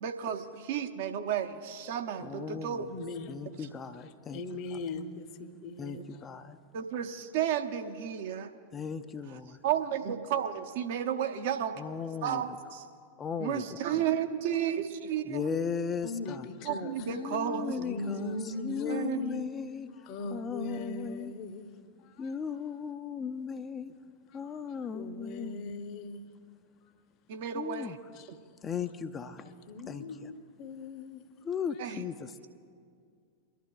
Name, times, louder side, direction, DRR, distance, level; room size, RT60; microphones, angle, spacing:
voice 1, 0.0-2.9 5.9-6.0 6.7-8.5 9.6-11.8 12.2-12.8 13.4-15.4 16.7-17.7 18.9-19.2 27.3-28.0 31.8-32.0, right 9 dB, 50° right, 0.8 m, -32 dB
voice 2, 2.2-3.0 3.3-4.4 5.8-6.6 8.7-9.6 11.8-12.4 13.2-14.0 15.3-16.5 17.1-21.3 22.2-23.9 24.3-25.7 27.5-28.0 28.6-29.5 29.9-30.3 31.4-32.5, left 6 dB, 20° left, 0.5 m, -37 dB
voice 3, 2.9-3.4 3.6-3.8 4.3-6.3 16.0-17.2 17.8-19.6 19.9-21.7 22.0-22.3 24.4-26.3 26.8-26.9 28.1-28.3 28.9-29.1 29.7-31.2, left 3 dB, 40° left, 0.8 m, -40 dB
28.5 x 12.0 x 2.3 m
figure-of-eight pair, 90°, 0 cm